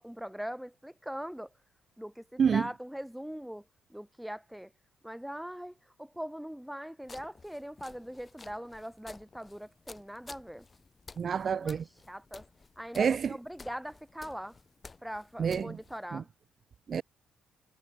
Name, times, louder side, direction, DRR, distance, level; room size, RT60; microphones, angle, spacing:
voice 1, 0.0-1.5 2.0-3.6 3.9-4.7 5.0-10.7 11.6-11.8 12.1-12.4 12.8-14.6 15.0-16.3, equal, ahead, 2.2 m, -41 dB
sound 1, 7.0-16.1, left 4 dB, 30° left, 5.3 m, -53 dB
voice 2, 11.2-11.8 12.9-13.3 15.4-15.8 16.1-16.2 16.9-17.0, right 7 dB, 50° right, 0.8 m, -28 dB
cardioid pair, 90°, 0 cm